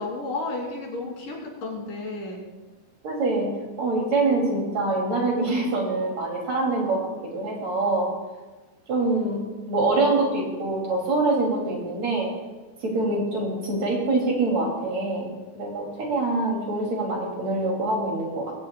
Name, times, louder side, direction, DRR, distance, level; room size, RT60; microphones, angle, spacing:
voice 1, 0.0-2.5, left 2 dB, 80° left, -2 dB, 4.7 m, -32 dB
voice 2, 3.0-3.5 3.8-7.0 7.3-8.1 8.9-9.4 9.7-12.3 12.8-15.3 15.5-18.5, right 2 dB, 55° right, -1 dB, 3.8 m, -24 dB
21.5 x 16.0 x 2.3 m, 1.3 s
omnidirectional pair, 3.7 m